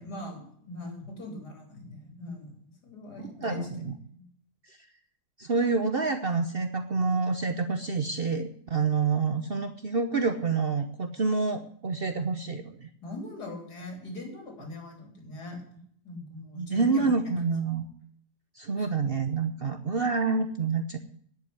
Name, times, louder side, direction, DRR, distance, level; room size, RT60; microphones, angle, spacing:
voice 1, 0.0-2.6 2.8-3.8 4.1-4.2 13.0-15.6 16.0-17.1 18.8-18.9, left 2 dB, 65° left, 3 dB, 3.9 m, -41 dB
voice 2, 3.4-4.0 5.4-12.9 16.6-17.9 18.6-21.0, right 4 dB, 45° right, 8 dB, 0.8 m, -27 dB
10.5 x 8.3 x 9.5 m, 0.63 s
omnidirectional pair, 1.9 m